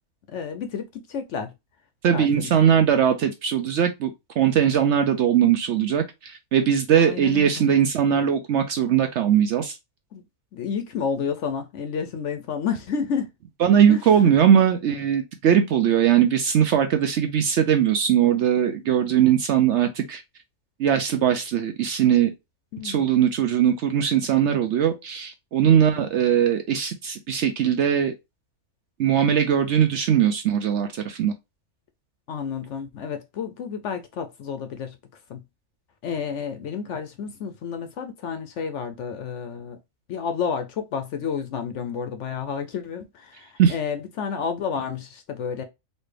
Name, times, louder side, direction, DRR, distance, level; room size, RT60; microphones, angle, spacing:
voice 1, 0.3-1.5 2.1-2.5 6.9-7.7 10.1-10.2 10.5-13.3 13.9-14.0 22.7-23.1 25.7-26.1 32.3-35.0 35.3-35.4 36.0-39.8 40.1-45.6, left 6 dB, 65° left, 0.8 m, -30 dB
voice 2, 2.0-4.1 4.4-9.8 13.6-20.2 20.8-22.3 22.8-28.1 29.0-31.3 43.6-43.7, right 9 dB, 65° right, 0.7 m, -20 dB
4.2 x 2.5 x 3.2 m
omnidirectional pair, 1.5 m